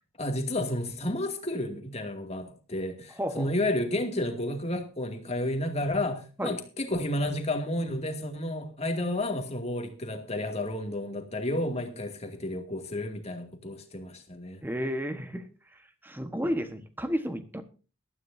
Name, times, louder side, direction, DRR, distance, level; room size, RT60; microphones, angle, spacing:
voice 1, 0.2-14.6, left 1 dB, 30° left, 2.3 m, -31 dB
voice 2, 3.2-3.5 6.4-6.6 14.6-15.5 16.0-17.6, equal, 10° right, 1.3 m, -32 dB
19.5 x 13.0 x 2.7 m
head